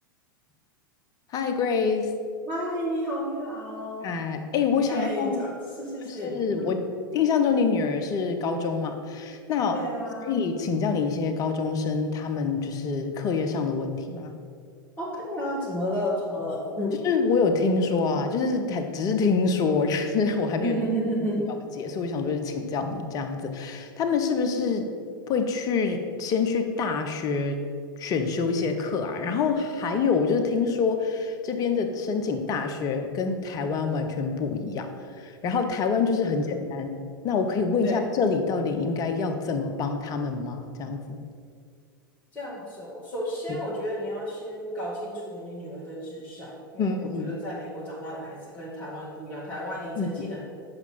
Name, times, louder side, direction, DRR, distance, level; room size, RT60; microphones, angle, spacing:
voice 1, 1.3-2.1 4.0-5.5 6.0-6.9 7.1-9.9 10.2-14.3 17.0-20.8 21.5-24.9 25.3-27.6 28.0-37.0 37.2-41.2 46.8-47.3 50.0-50.1, left 5 dB, 30° left, 7 dB, 0.8 m, -26 dB
voice 2, 2.5-4.1 4.9-6.7 9.7-10.3 15.0-17.0 20.6-21.4 36.3-36.6 37.8-38.0 42.3-50.4, equal, 15° left, -7 dB, 1.8 m, -32 dB
7.8 x 5.9 x 5.7 m, 2.2 s
figure-of-eight pair, 90°, 12 cm